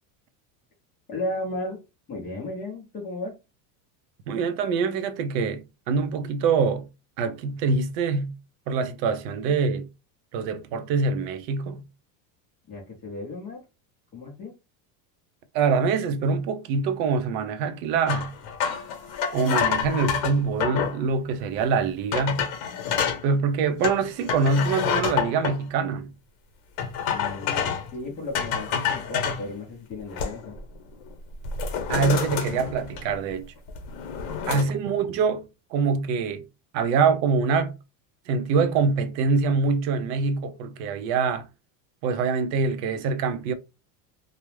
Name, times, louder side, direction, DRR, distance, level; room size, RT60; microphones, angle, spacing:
voice 1, 1.1-1.8 2.1-3.3 9.5-9.6 12.7-13.6 14.1-14.5 27.1-30.6 34.5-34.7, left 2 dB, 20° left, 0.4 m, -34 dB
voice 2, 4.3-6.9 7.2-8.3 8.7-9.9 10.3-11.8 15.5-18.3 19.3-22.5 23.2-26.1 31.9-33.5 34.5-36.4 36.7-37.7 38.3-41.5 42.0-43.5, right 5 dB, 90° right, 0.6 m, -24 dB
sound 1, 18.1-21.0 21.6-21.7 22.1-23.2 23.8-25.6 26.8-27.9 28.3-29.4 29.9-30.6 30.9-31.1 31.4-33.3 33.7-34.6, left 7 dB, 65° left, 0.8 m, -28 dB
2.3 x 2.0 x 3.0 m
cardioid pair, 165°, 49 cm